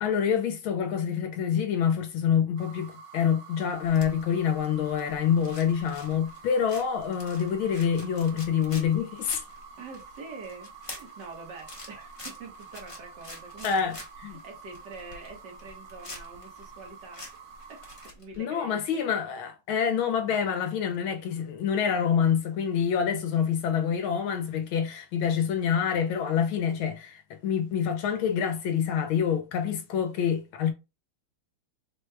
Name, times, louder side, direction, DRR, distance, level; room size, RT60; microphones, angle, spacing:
voice 1, 0.0-9.4 13.6-14.0 14.2-14.4 18.4-30.7, left 8 dB, 75° left, 1.4 m, -26 dB
sound 1, 2.6-18.1, right 5 dB, 90° right, 1.7 m, -48 dB
sound 2, 3.8-18.4, left 1 dB, 55° left, 0.3 m, -47 dB
voice 2, 9.8-13.9 14.3-17.2 17.7-17.8 18.1-19.0, right 4 dB, 60° right, 1.5 m, -45 dB
4.6 x 2.3 x 3.2 m
omnidirectional pair, 2.4 m